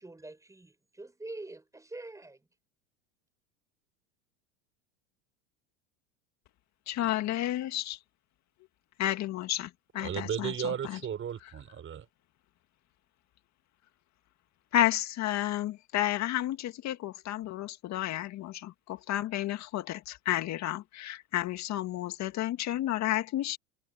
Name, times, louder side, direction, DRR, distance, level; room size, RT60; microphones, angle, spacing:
voice 1, 0.0-2.5, right 2 dB, 10° right, 6.9 m, -45 dB
voice 2, 6.9-8.0 9.0-11.0 14.7-23.6, left 13 dB, 45° left, 2.0 m, -31 dB
voice 3, 10.0-12.1, right 9 dB, 30° right, 5.7 m, -35 dB
supercardioid pair, 110°, 38 cm